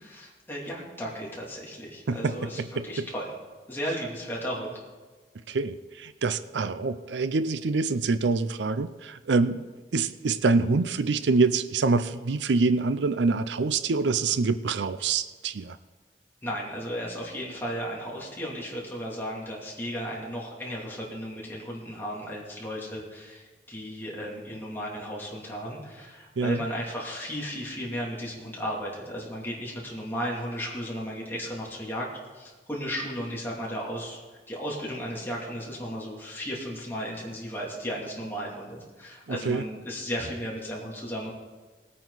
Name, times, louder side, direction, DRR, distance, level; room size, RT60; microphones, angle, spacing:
voice 1, 0.0-3.3 3.7-4.8 16.4-32.1 32.3-34.2 34.5-41.3, equal, 15° left, -4 dB, 2.8 m, -35 dB
voice 2, 2.1-3.1 5.5-9.7 9.9-15.8 26.4-26.6 39.3-39.7, right 4 dB, 85° right, 13 dB, 0.5 m, -26 dB
19.5 x 9.1 x 4.1 m, 1.4 s
head